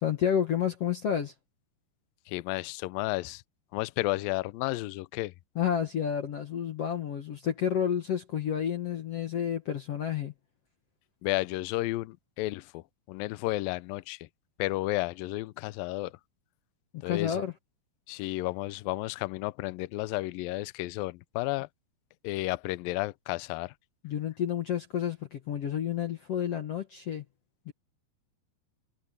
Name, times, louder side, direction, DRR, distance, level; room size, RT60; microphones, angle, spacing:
voice 1, 0.0-1.3 5.6-10.3 17.1-17.5 24.0-27.2 27.7-27.8, left 9 dB, 55° left, 1.9 m, -30 dB
voice 2, 2.3-3.4 3.7-5.3 11.2-14.3 14.6-16.2 17.0-17.4 18.1-21.7 22.2-23.7, left 20 dB, 80° left, 2.3 m, -32 dB
omnidirectional pair, 4.4 m